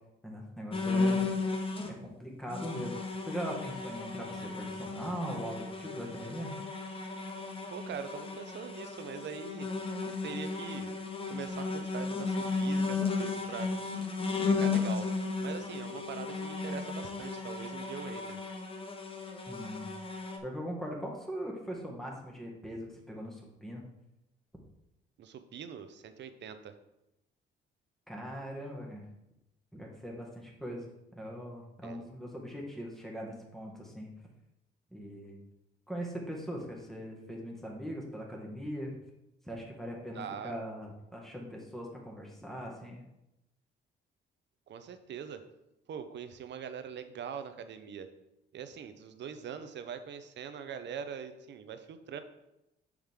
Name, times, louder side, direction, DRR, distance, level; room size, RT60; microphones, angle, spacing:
voice 1, 0.2-1.3 2.0-3.0 3.3-6.5 19.5-19.9 20.4-23.8 28.1-29.0 29.7-34.1 34.9-35.4 35.9-39.0 39.5-43.0, equal, ahead, -1 dB, 1.8 m, -40 dB
sound 1, 0.7-1.9 2.5-20.4, left 4 dB, 25° left, 1.1 m, -34 dB
voice 2, 7.7-9.7 10.0-10.9 11.3-13.7 14.5-15.1 15.4-18.4 25.2-26.7 31.8-32.1 40.1-40.5 44.7-45.4 45.9-48.1 48.5-52.2, right 7 dB, 65° right, 9 dB, 0.8 m, -42 dB
7.1 x 6.4 x 3.7 m, 0.89 s
cardioid pair, 90°, 20 cm